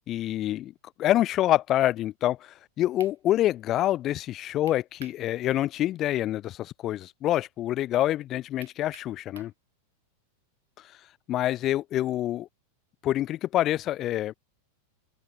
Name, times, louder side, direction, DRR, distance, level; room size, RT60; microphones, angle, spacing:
voice 1, 0.1-0.7 1.0-9.5 11.3-12.5 13.0-14.3, left 13 dB, 35° left, 3.0 m, -26 dB
sound 1, 3.0-3.2 4.7-5.2 5.6-5.7 8.6-9.6, right 10 dB, 65° right, 3.8 m, -49 dB
figure-of-eight pair, 90°, 0 cm